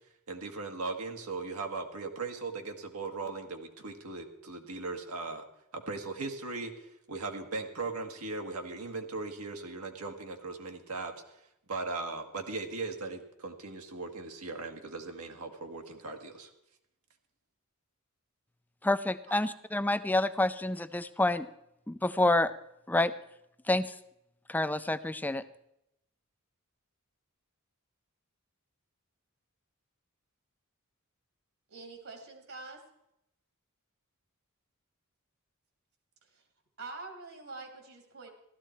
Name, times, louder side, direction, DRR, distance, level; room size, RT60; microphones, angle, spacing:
voice 1, 0.3-5.4 5.7-11.1 11.7-16.5, right 3 dB, 85° right, 3 dB, 1.7 m, -38 dB
voice 2, 18.8-21.5 21.9-22.5 22.9-23.1 23.7-23.9 24.5-25.4, left 2 dB, 10° left, 13 dB, 0.4 m, -28 dB
voice 3, 31.7-32.8 36.3-36.4 36.8-38.3, right 3 dB, 65° right, 4 dB, 2.1 m, -45 dB
15.0 x 13.0 x 4.5 m, 0.82 s
head